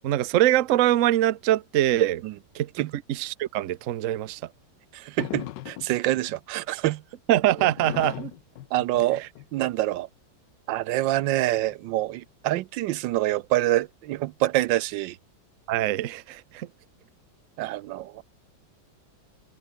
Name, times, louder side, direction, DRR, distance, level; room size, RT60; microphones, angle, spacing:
voice 1, 0.0-2.2 2.5-4.4 7.3-8.3 9.2-9.3 15.7-16.7, right 13 dB, 60° right, 0.9 m, -23 dB
voice 2, 4.9-7.0 8.7-9.2 9.5-10.1 10.7-15.2 17.6-18.2, right 15 dB, 80° right, 1.3 m, -26 dB
sound 1, 5.2-6.1 7.6-10.0 11.0-12.0, left 14 dB, 75° left, 1.3 m, -38 dB
omnidirectional pair, 2.0 m